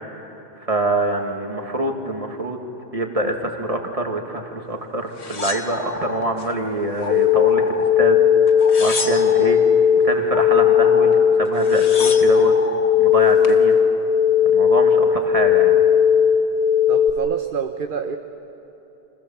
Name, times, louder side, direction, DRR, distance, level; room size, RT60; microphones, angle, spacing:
voice 1, 0.7-2.6 2.9-8.2 8.8-9.6 10.0-12.5 13.0-13.7 14.5-15.8, right 2 dB, 35° right, 3 dB, 2.3 m, -25 dB
sound 1, 5.2-6.5 7.0-7.7 8.5-9.6 11.1-11.2 11.4-12.4 13.1-13.6, left 4 dB, 85° left, 1.7 m, -32 dB
sound 2, 5.2-14.0, left 3 dB, 70° left, 2.2 m, -35 dB
sound 3, 7.1-17.1, left 8 dB, 50° left, 1.6 m, -16 dB
voice 2, 16.9-18.2, right 6 dB, 55° right, 6 dB, 1.0 m, -27 dB
29.0 x 25.5 x 7.3 m, 3.0 s
omnidirectional pair, 1.1 m